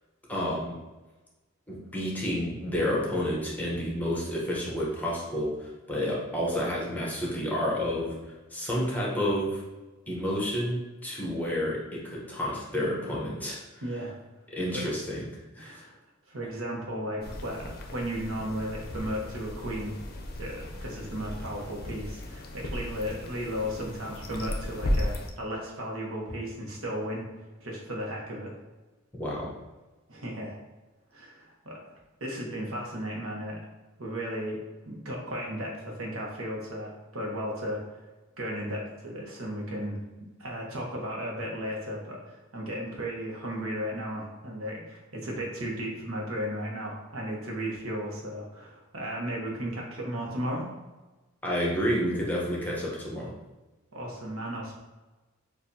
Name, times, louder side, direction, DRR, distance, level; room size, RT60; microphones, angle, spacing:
voice 1, 0.3-0.8 1.7-9.6 10.1-13.6 14.5-15.3 15.5-15.7 29.2-29.5 51.4-53.3, equal, 10° left, -4 dB, 0.9 m, -30 dB
voice 2, 13.8-14.1 14.7-14.9 15.6-16.0 16.3-20.0 20.3-28.5 30.1-30.6 31.1-33.6 34.0-37.8 38.4-40.0 40.4-50.7 53.9-54.8, equal, 85° right, -2 dB, 1.1 m, -35 dB
sound 1, 17.2-25.3, left 1 dB, 50° left, 0.5 m, -35 dB
6.5 x 2.6 x 2.7 m, 1.2 s
head